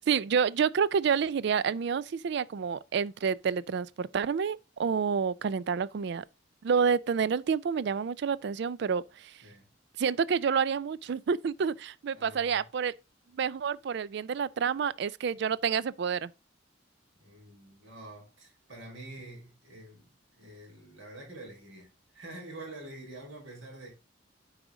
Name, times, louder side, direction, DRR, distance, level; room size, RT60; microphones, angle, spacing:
voice 1, 0.1-6.2 6.6-9.3 10.0-12.9 13.3-16.3, right 6 dB, 60° right, 0.3 m, -29 dB
voice 2, 12.1-12.6 17.2-23.9, right 2 dB, 80° right, 3.9 m, -47 dB
8.9 x 4.9 x 3.6 m
head